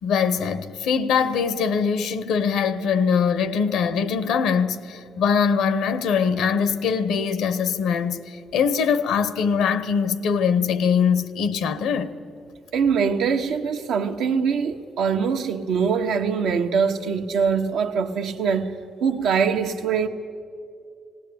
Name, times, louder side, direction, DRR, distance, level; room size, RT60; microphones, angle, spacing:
voice 1, 0.0-12.1, left 6 dB, 85° left, 1.0 m, -22 dB
voice 2, 12.7-20.1, right 6 dB, 85° right, 1.2 m, -23 dB
18.5 x 18.0 x 8.7 m
cardioid pair, 90°, 0 cm